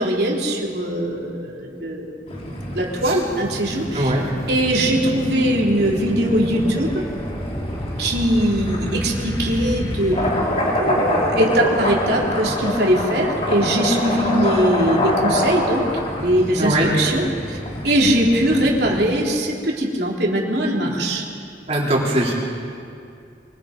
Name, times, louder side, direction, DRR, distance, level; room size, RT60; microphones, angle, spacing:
voice 1, 0.0-2.1 2.7-4.1 4.5-6.9 8.0-10.2 10.8-15.9 16.2-17.6 17.8-21.2, right 1 dB, 65° right, -2 dB, 3.6 m, -21 dB
sound 1, 2.3-19.1, left 1 dB, 35° left, 4.1 m, -26 dB
sound 2, 3.0-3.1 3.6-11.3, equal, 20° left, 1.5 m, -32 dB
voice 2, 3.9-4.2 16.6-16.9 20.8-20.9 21.7-22.3, right 1 dB, 35° right, -4 dB, 4.5 m, -21 dB
25.5 x 24.0 x 5.3 m, 2.4 s
head